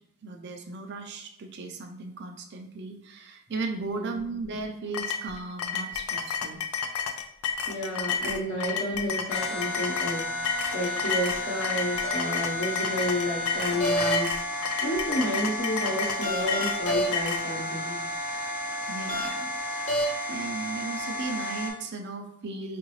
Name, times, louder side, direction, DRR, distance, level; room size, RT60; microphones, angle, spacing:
voice 1, 0.2-6.6 18.9-22.8, right 3 dB, 50° right, 5 dB, 0.5 m, -36 dB
voice 2, 3.9-4.2 7.7-18.0, left 1 dB, 60° left, -6 dB, 1.0 m, -31 dB
sound 1, 4.9-17.5, left 6 dB, 90° left, 0.4 m, -31 dB
sound 2, 9.3-21.7, equal, 35° left, 0.9 m, -31 dB
4.6 x 2.5 x 3.1 m, 0.77 s
head